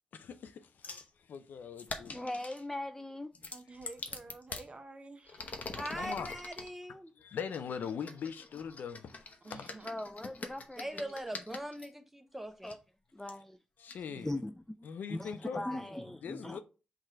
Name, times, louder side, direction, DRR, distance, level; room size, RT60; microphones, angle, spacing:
voice 1, 0.2-2.2 5.9-6.4 6.9-9.7 13.8-14.3 14.8-15.9 16.2-16.6, left 7 dB, 80° left, 0.4 m, -42 dB
sound 1, 0.8-1.1 1.8-2.6 3.3-4.7 5.2-6.7 7.5-11.9 12.7-12.8 13.3-13.4 13.9-14.0, left 3 dB, 60° left, 0.8 m, -44 dB
voice 2, 2.1-3.3 9.8-11.1 12.6-12.8 13.1-13.6 14.2-14.5 14.8-16.6, left 1 dB, 10° left, 0.3 m, -40 dB
voice 3, 3.5-5.5 9.4-10.0 14.1-14.2, right 3 dB, 40° right, 0.7 m, -50 dB
voice 4, 5.7-7.1 10.8-12.7, right 1 dB, 10° right, 0.8 m, -41 dB
4.6 x 2.4 x 4.3 m
cardioid pair, 55°, 3 cm